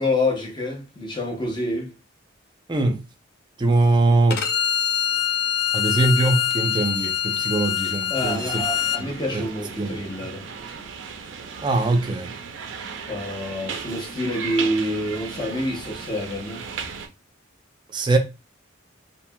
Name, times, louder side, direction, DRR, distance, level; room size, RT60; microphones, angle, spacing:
voice 1, 0.0-1.9 8.1-10.5 13.1-16.6, left 1 dB, 25° left, 0.7 m, -27 dB
voice 2, 3.6-4.4 5.7-8.6 9.0-9.1 9.3-9.4 9.8-10.0 11.6-12.3 17.9-18.2, right 2 dB, 25° right, 0.5 m, -21 dB
Bowed string instrument, 4.3-9.0, left 9 dB, 55° left, 0.4 m, -24 dB
sound 1, 8.1-17.1, right 6 dB, 75° right, 0.5 m, -36 dB
3.0 x 2.8 x 2.2 m
head